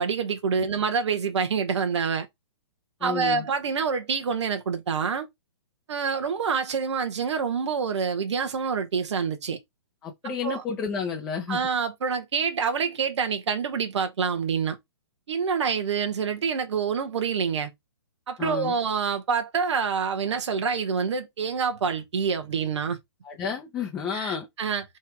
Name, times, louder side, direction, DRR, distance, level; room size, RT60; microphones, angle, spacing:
voice 1, 0.0-2.3 3.0-5.3 5.9-9.6 10.2-10.6 11.5-14.8 15.3-17.7 18.3-23.0 24.1-24.8, right 6 dB, 65° right, 1.1 m, -27 dB
voice 2, 3.0-3.5 10.0-11.6 18.4-18.7 23.2-24.5, left 6 dB, 10° left, 0.6 m, -31 dB
3.2 x 3.1 x 4.7 m
hypercardioid pair, 165°, 15 cm